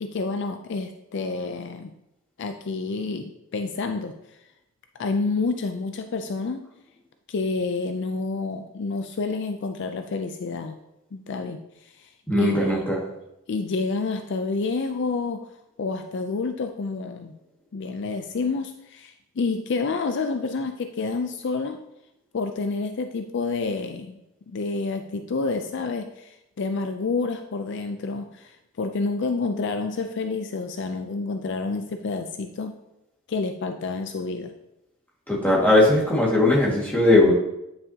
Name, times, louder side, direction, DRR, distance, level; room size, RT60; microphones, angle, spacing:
voice 1, 0.0-1.9 2.4-4.1 5.0-6.6 7.3-10.8 11.1-11.6 11.9-12.1 12.4-12.9 13.5-15.4 15.8-17.3 17.7-21.8 22.3-24.2 24.5-32.7 33.3-34.5, left 4 dB, 55° left, 6 dB, 0.4 m, -29 dB
voice 2, 12.3-13.0 35.3-37.3, left 1 dB, 10° left, -5 dB, 1.8 m, -19 dB
9.5 x 5.4 x 2.8 m, 0.85 s
head